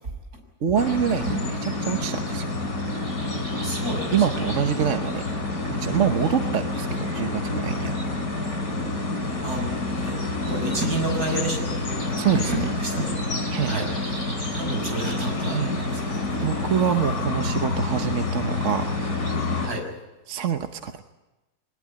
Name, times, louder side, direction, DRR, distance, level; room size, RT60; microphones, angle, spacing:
voice 1, 0.6-2.5 4.1-5.2 5.8-8.0 12.2-12.7 13.5-13.7 15.5-15.7 16.4-18.9 20.3-21.0, right 8 dB, 55° right, 7 dB, 1.3 m, -25 dB
sound 1, 0.8-19.7, left 2 dB, 65° left, 5.6 m, -28 dB
voice 2, 3.5-4.1 9.4-9.7 10.0-10.2 10.5-13.1 13.7-13.9 14.5-16.3 19.6-19.9, right 1 dB, 70° right, 3 dB, 6.9 m, -29 dB
22.0 x 21.5 x 8.7 m, 1.1 s
omnidirectional pair, 1.7 m